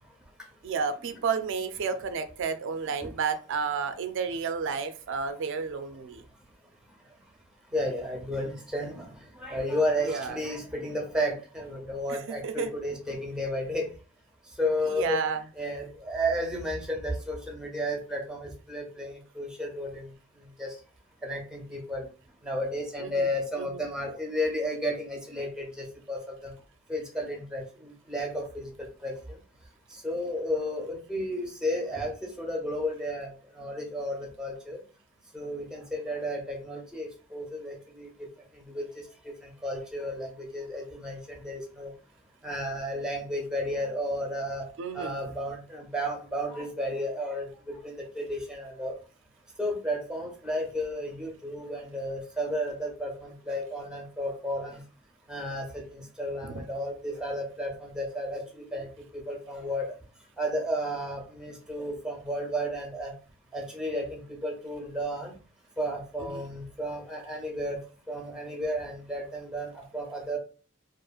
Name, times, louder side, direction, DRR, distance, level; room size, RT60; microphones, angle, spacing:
voice 1, 0.6-6.2 10.0-10.4 12.1-12.7 14.9-15.4 23.0-23.2 23.6-23.8 44.8-45.2 56.4-56.6 66.3-66.4, right 5 dB, 65° right, 9 dB, 0.4 m, -31 dB
voice 2, 7.7-9.1 9.4-13.9 14.6-15.2 15.6-20.1 20.6-20.7 21.2-22.1 22.4-26.5 26.9-28.7 29.0-29.1 29.9-33.3 33.6-34.8 35.3-38.1 38.6-39.0 39.4-41.9 42.4-44.6 44.9-48.9 49.6-54.8 55.3-58.4 58.7-58.9 59.1-59.9 60.4-63.1 63.5-65.3 65.8-67.8 68.1-70.4, equal, 5° right, 1 dB, 0.7 m, -32 dB
2.9 x 2.5 x 2.3 m, 0.36 s
head